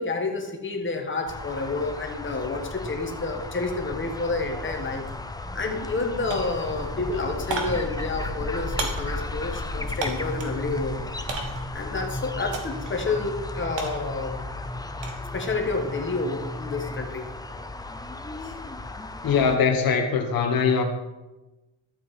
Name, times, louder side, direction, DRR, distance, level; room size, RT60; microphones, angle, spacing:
voice 1, 0.0-5.0 5.5-11.2 11.7-14.4 15.3-17.3 18.4-18.5, left 3 dB, 25° left, 3 dB, 1.5 m, -29 dB
sound 1, 1.3-19.6, left 2 dB, 10° left, 0.4 m, -34 dB
sound 2, 5.0-5.2 5.5-6.0 6.3-10.6 11.3-11.8 12.5-13.0 13.3-15.3 15.6-16.0, right 3 dB, 65° right, 1.7 m, -35 dB
voice 2, 19.2-20.8, left 6 dB, 45° left, 2 dB, 1.3 m, -22 dB
12.0 x 7.9 x 4.2 m, 1.0 s
cardioid pair, 135°, 47 cm